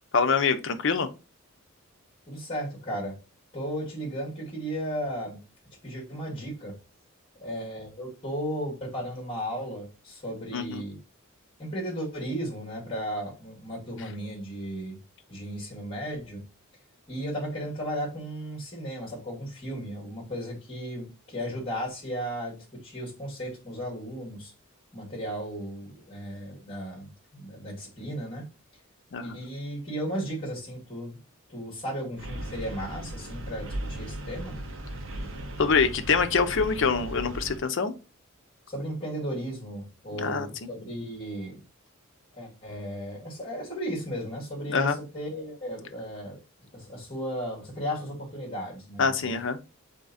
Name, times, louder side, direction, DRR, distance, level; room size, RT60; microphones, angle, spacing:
voice 1, 0.1-1.1 10.5-10.8 29.1-29.3 35.6-37.9 40.2-40.7 44.7-45.0 49.0-49.6, left 5 dB, 60° left, 0.6 m, -25 dB
voice 2, 2.3-3.1 3.5-5.4 5.8-6.7 7.4-11.0 11.6-15.0 15.3-16.4 17.1-24.5 24.9-28.4 29.2-31.2 31.5-34.6 38.7-41.6 42.3-46.4 46.7-49.4, equal, 25° left, 2.0 m, -35 dB
sound 1, 32.2-37.6, right 1 dB, 60° right, 0.7 m, -37 dB
3.7 x 3.4 x 4.0 m
head